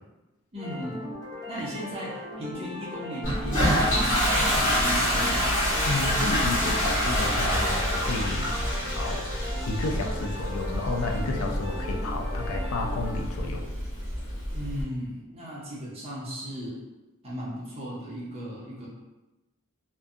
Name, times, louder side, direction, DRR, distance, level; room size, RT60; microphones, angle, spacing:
voice 1, 0.5-1.0 1.5-5.4 14.5-16.8 17.2-18.9, equal, 30° right, -6 dB, 0.7 m, -36 dB
sound 1, 0.6-13.2, left 1 dB, 20° left, 0.6 m, -39 dB
Toilet flush, 3.2-14.8, equal, 65° left, 1.3 m, -27 dB
voice 2, 5.8-8.5 9.0-13.6, left 3 dB, 85° left, 2 dB, 0.4 m, -32 dB
2.6 x 2.2 x 2.4 m, 1.0 s
head